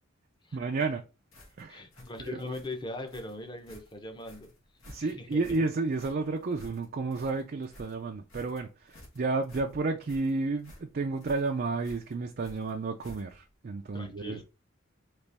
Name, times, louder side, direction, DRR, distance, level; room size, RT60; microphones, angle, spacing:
voice 1, 0.5-1.0 1.6-1.8 2.2-2.5 4.9-14.4, right 3 dB, 45° right, 0.4 m, -31 dB
sound 1, 1.3-13.5, equal, 85° left, 1.5 m, -53 dB
voice 2, 1.7-4.5 5.0-5.4 13.9-14.4, left 2 dB, 20° left, 0.7 m, -40 dB
4.1 x 3.0 x 3.4 m
head